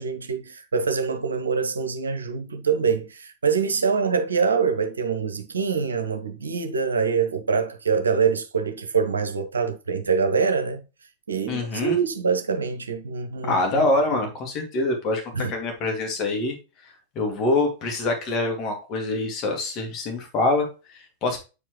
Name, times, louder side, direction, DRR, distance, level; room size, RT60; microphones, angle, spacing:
voice 1, 0.0-10.8 11.3-13.9 15.3-15.5, right 5 dB, 70° right, 0.8 m, -25 dB
voice 2, 11.5-12.0 13.4-15.2 15.5-16.6 16.8-21.4, left 2 dB, 35° left, 2.0 m, -25 dB
8.1 x 4.7 x 2.9 m
figure-of-eight pair, 90°, 0 cm